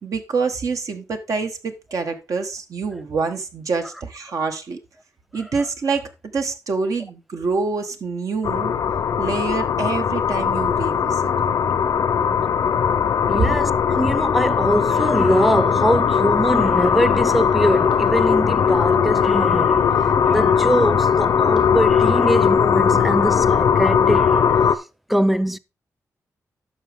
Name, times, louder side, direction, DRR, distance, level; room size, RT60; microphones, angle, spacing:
voice 1, 0.0-4.8 5.3-8.7 9.2-11.5, right 4 dB, 65° right, 1.3 m, -26 dB
sound 1, 8.4-24.8, left 7 dB, 75° left, 0.6 m, -19 dB
voice 2, 13.3-24.8 25.1-25.6, equal, ahead, 0.4 m, -22 dB
11.0 x 6.2 x 3.5 m
wide cardioid pair, 105°, 6 cm